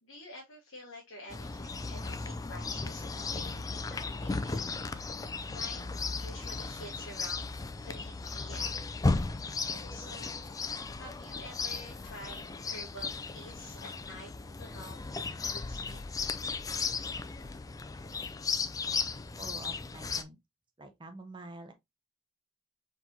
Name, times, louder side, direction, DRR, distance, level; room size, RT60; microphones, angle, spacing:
voice 1, 0.0-3.6 3.9-4.7 5.5-7.5 7.8-8.9 9.7-10.5 11.0-15.0 15.5-16.0, left 1 dB, 65° left, 1.5 m, -49 dB
Chirp tweet, 1.3-20.2, left 4 dB, 15° left, 0.3 m, -36 dB
voice 2, 19.4-20.4 20.8-21.7, right 2 dB, 20° right, 0.6 m, -47 dB
4.5 x 4.1 x 2.6 m
head